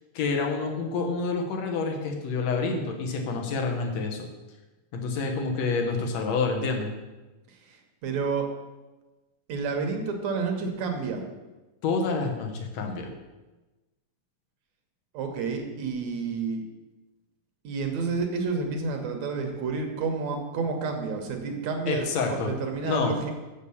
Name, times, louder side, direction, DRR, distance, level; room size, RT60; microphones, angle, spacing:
voice 1, 0.1-4.3 4.9-6.9 11.8-13.1 21.9-22.5 22.8-23.1, left 4 dB, 65° left, 2 dB, 2.3 m, -28 dB
voice 2, 8.0-8.5 9.5-11.2 15.1-16.6 17.6-23.3, right 4 dB, 70° right, 4 dB, 2.2 m, -30 dB
7.1 x 6.6 x 7.0 m, 1.1 s
omnidirectional pair, 3.5 m